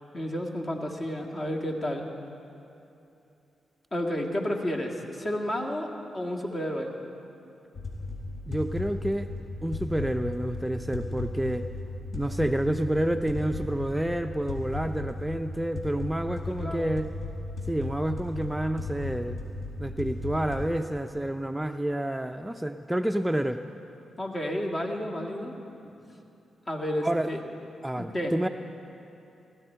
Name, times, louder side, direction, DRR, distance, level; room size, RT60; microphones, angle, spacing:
voice 1, 0.1-2.1 3.9-6.9 16.5-16.9 24.2-25.6 25.8-25.9 26.7-27.4 28.0-28.3, equal, 40° left, 1 dB, 1.8 m, -31 dB
sound 1, 7.7-20.7, left 2 dB, 60° left, 3.7 m, -36 dB
voice 2, 8.5-9.3 9.6-11.7 12.1-17.1 17.7-19.5 19.8-23.6 27.0-27.3 27.8-28.5, right 1 dB, 10° right, 8 dB, 0.4 m, -29 dB
16.0 x 12.5 x 4.5 m, 2.8 s
supercardioid pair, 45°, 0 cm